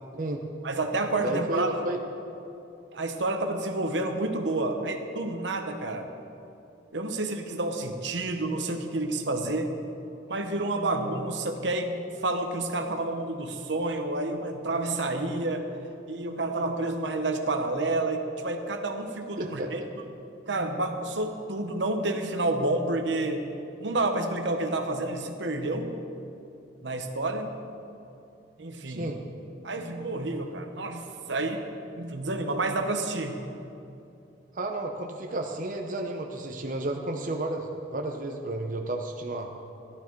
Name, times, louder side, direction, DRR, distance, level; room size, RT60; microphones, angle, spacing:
voice 1, 0.6-1.8 2.9-6.1 6.9-9.7 10.3-15.7 16.1-19.8 20.5-23.5 23.8-26.0 26.8-27.5 28.6-29.1 29.6-31.6 32.0-33.4, right 2 dB, 75° right, 5 dB, 1.0 m, -29 dB
voice 2, 1.2-2.0 19.4-19.7 28.9-29.2 34.5-39.5, right 1 dB, 45° right, 2 dB, 0.8 m, -32 dB
14.0 x 12.0 x 4.6 m, 2.8 s
head